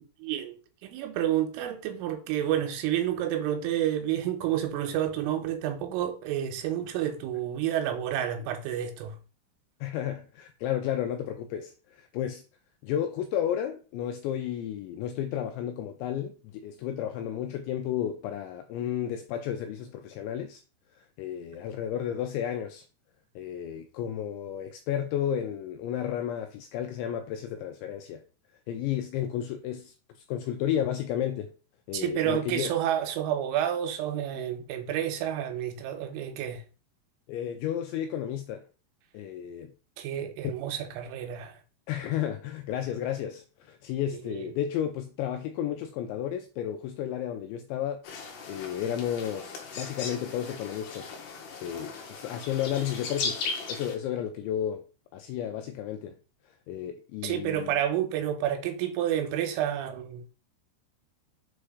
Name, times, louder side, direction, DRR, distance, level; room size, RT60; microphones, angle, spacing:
voice 1, 0.2-0.6 0.8-9.2 31.9-36.6 40.0-41.6 44.1-44.5 57.2-60.2, right 11 dB, 80° right, 3.4 m, -30 dB
voice 2, 9.8-12.4 12.8-20.6 21.2-22.9 23.4-28.2 28.7-29.9 30.3-31.5 31.9-32.7 37.3-38.6 39.1-39.7 41.9-48.0 48.4-51.2 51.6-54.8 55.1-56.2 56.7-57.7, left 10 dB, 85° left, 2.6 m, -32 dB
sound 1, 48.0-53.9, left 4 dB, 65° left, 2.5 m, -37 dB
7.1 x 3.3 x 4.8 m
omnidirectional pair, 5.8 m